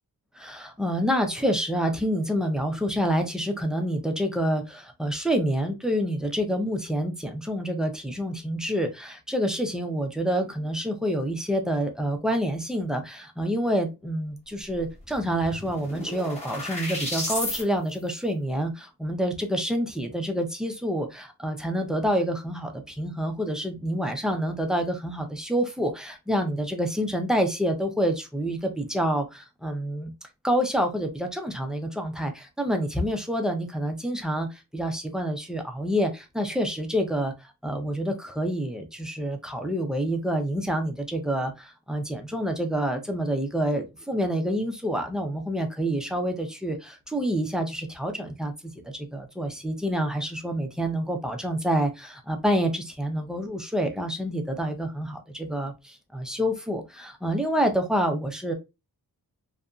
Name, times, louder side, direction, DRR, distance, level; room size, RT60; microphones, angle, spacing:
voice 1, 0.4-30.1 30.4-48.5 48.8-58.5, equal, ahead, 0.3 m, -27 dB
sound 1, 14.8-14.9 15.1-17.6, left 1 dB, 20° left, 0.8 m, -33 dB
2.8 x 2.5 x 2.2 m
wide cardioid pair, 170°, 36 cm